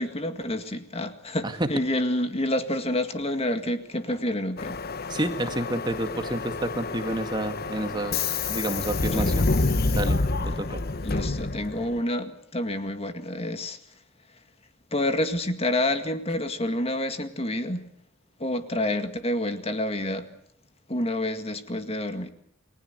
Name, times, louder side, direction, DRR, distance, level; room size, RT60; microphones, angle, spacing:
voice 1, 0.0-4.8 9.1-9.4 11.0-13.8 14.9-17.9 18.4-20.3 20.9-22.3, left 1 dB, 30° left, 2.0 m, -28 dB
Subway metro underground, 4.6-12.0, left 3 dB, 50° left, 1.0 m, -28 dB
voice 2, 5.1-8.2 8.5-9.5 10.0-10.2 10.6-10.8, right 1 dB, 20° right, 2.1 m, -29 dB
29.5 x 20.5 x 8.2 m
head